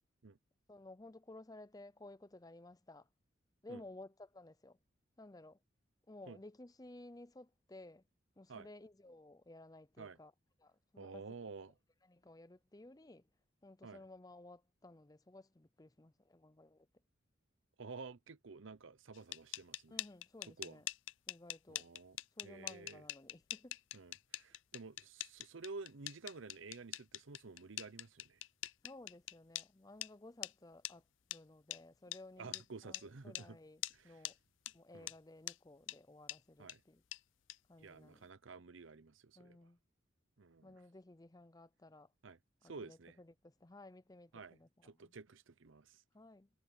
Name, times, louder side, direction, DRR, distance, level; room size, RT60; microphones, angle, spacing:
voice 1, 0.7-3.1 3.6-4.8 5.2-5.6 6.1-8.0 8.4-10.3 10.6-11.2 12.0-13.3 13.6-16.9 19.9-20.9 21.3-21.9 22.4-23.8 28.8-31.0 31.3-34.4 34.7-37.0 37.7-38.3 39.4-39.8 40.6-42.1 42.6-45.1 46.1-46.5, left 2 dB, 20° left, 0.6 m, -56 dB
voice 2, 11.0-11.7 13.8-14.0 17.8-20.0 20.4-20.8 21.7-22.2 22.4-23.0 23.9-28.4 32.4-33.6 33.9-34.2 34.9-35.1 36.6-36.8 37.8-39.6 40.4-40.8 42.2-43.2 44.3-46.0, right 4 dB, 75° right, 0.8 m, -51 dB
sound 1, 19.1-29.7 30.0-30.1 30.4-30.5 30.8-30.9 31.3-31.4 31.7-31.8 32.1-32.2 32.5-32.6 32.9-33.0 33.3-33.5 33.8-34.0 34.2-34.3 34.7-34.8 35.1-35.2 35.5-35.6 35.9-36.0 36.3-36.4 36.7-36.8 37.1-37.2 37.5-37.6, left 16 dB, 70° left, 0.4 m, -43 dB
head